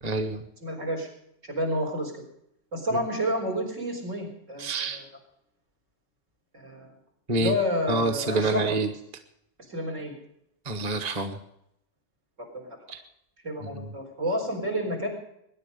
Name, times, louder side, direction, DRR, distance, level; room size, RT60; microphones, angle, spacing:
voice 1, 0.0-0.4 2.9-3.0 4.6-5.0 7.3-7.5 7.9-8.9 10.6-11.4 12.9-13.0 13.6-13.9, right 2 dB, 35° right, 7 dB, 1.3 m, -27 dB
voice 2, 0.6-1.1 1.5-2.1 2.7-5.0 6.5-6.9 7.3-8.7 9.7-10.1 12.6-12.8 13.4-15.1, equal, 75° right, 3 dB, 4.8 m, -30 dB
21.5 x 10.5 x 5.3 m, 0.76 s
omnidirectional pair, 1.3 m